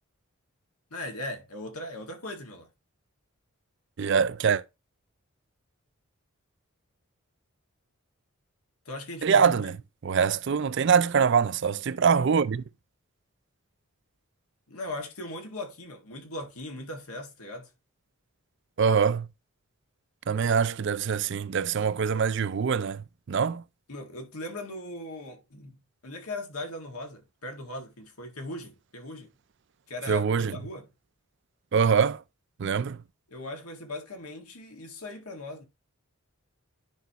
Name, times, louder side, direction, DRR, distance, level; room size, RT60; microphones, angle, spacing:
voice 1, 0.9-2.7 8.9-9.7 14.7-17.7 23.9-29.3 29.9-30.9 33.3-35.6, left 2 dB, 90° left, 1.9 m, -39 dB
voice 2, 4.0-4.6 9.2-9.7 10.0-12.6 18.8-19.3 20.3-23.6 30.1-30.6 31.7-32.2 32.6-33.0, right 6 dB, 55° right, 0.4 m, -24 dB
10.5 x 5.2 x 2.9 m
head